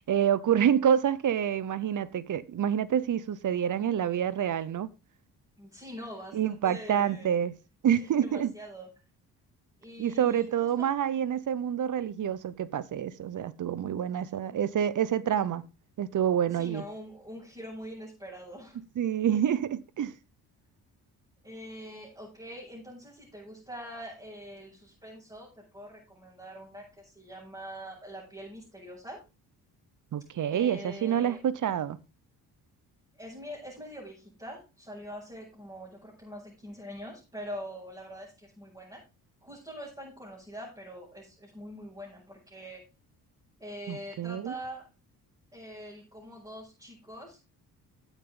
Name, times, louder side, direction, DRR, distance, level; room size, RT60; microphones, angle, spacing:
voice 1, 0.0-4.9 6.3-7.5 7.8-8.5 10.0-15.7 16.0-16.8 19.0-20.1 30.1-32.0 43.9-44.5, right 9 dB, 55° right, 0.9 m, -27 dB
voice 2, 5.6-7.3 8.0-8.9 9.8-10.9 16.5-18.8 21.4-29.2 30.5-31.4 33.1-39.0 39.4-42.8 43.6-44.9 45.5-47.4, equal, 10° right, 6.7 m, -44 dB
12.0 x 8.7 x 3.9 m
supercardioid pair, 70°, 38 cm